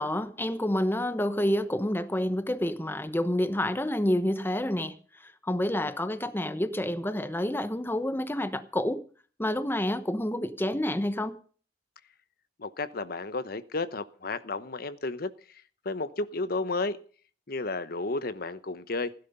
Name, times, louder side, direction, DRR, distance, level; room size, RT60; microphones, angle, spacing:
voice 1, 0.0-9.0 9.4-11.4, left 1 dB, 10° left, 1.0 m, -28 dB
voice 2, 12.6-17.0 17.5-19.1, left 3 dB, 55° left, 0.9 m, -33 dB
16.5 x 11.0 x 5.5 m
head